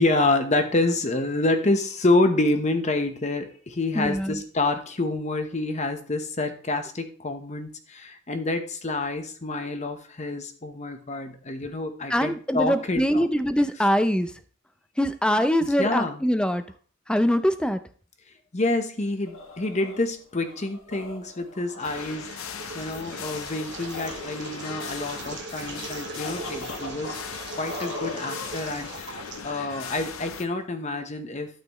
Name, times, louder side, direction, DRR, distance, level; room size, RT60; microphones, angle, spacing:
voice 1, 0.0-13.3 15.6-16.2 18.5-27.2 27.6-31.5, left 2 dB, 35° left, 7 dB, 0.9 m, -27 dB
voice 2, 4.0-4.4 12.1-14.3 15.0-16.6 17.1-17.8, equal, 5° left, 11 dB, 0.5 m, -23 dB
sound 1, 19.0-29.3, left 2 dB, 70° left, 1.6 m, -42 dB
sound 2, 21.8-30.5, left 7 dB, 85° left, 0.7 m, -38 dB
sound 3, 21.8-30.3, right 5 dB, 55° right, 0.9 m, -40 dB
12.5 x 5.9 x 3.1 m, 0.43 s
head